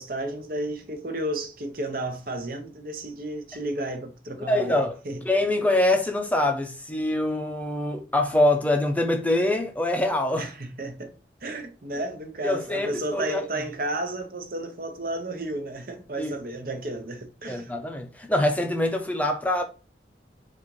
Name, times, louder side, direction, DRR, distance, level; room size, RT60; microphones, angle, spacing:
voice 1, 0.0-5.2 10.4-11.1 11.4-17.7, right 1 dB, 50° right, 0.9 m, -32 dB
voice 2, 4.5-4.9 5.3-10.5 12.4-13.4 16.2-16.3 17.5-19.6, left 1 dB, 10° left, 0.6 m, -24 dB
4.2 x 2.5 x 4.6 m
head